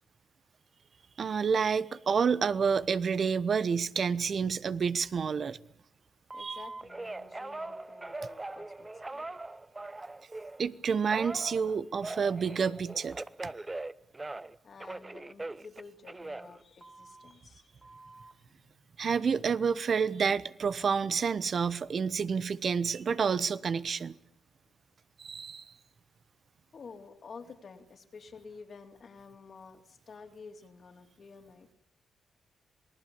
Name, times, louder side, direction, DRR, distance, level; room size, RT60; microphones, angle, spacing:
voice 1, 1.2-5.6 6.4-6.6 10.6-13.2 19.0-24.2 25.2-25.6, right 6 dB, 55° right, 1.1 m, -29 dB
voice 2, 6.3-9.3 14.6-19.1 20.4-20.5 20.7-21.2 21.6-22.0 26.7-31.7, left 5 dB, 55° left, 3.4 m, -51 dB
Telephone, 6.3-10.6 11.1-14.5 14.8-17.3 17.8-18.3, right 2 dB, 25° right, 1.0 m, -41 dB
27.5 x 19.5 x 8.7 m
hypercardioid pair, 45°, 0 cm